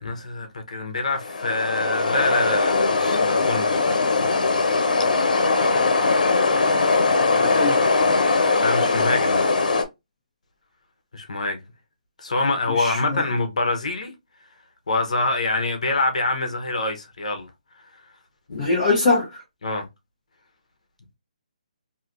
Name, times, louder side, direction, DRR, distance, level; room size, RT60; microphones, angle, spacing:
voice 1, 0.0-4.7 8.6-9.5 11.1-11.6 12.2-14.1 14.9-17.5 18.5-18.7 19.6-19.9, left 2 dB, 60° left, 0.9 m, -26 dB
sound 1, 1.1-9.8, left 3 dB, 90° left, 0.8 m, -20 dB
voice 2, 7.4-7.7 12.8-13.2 18.6-19.4, left 3 dB, 15° left, 0.9 m, -22 dB
3.1 x 2.7 x 2.5 m
hypercardioid pair, 180°, 4 cm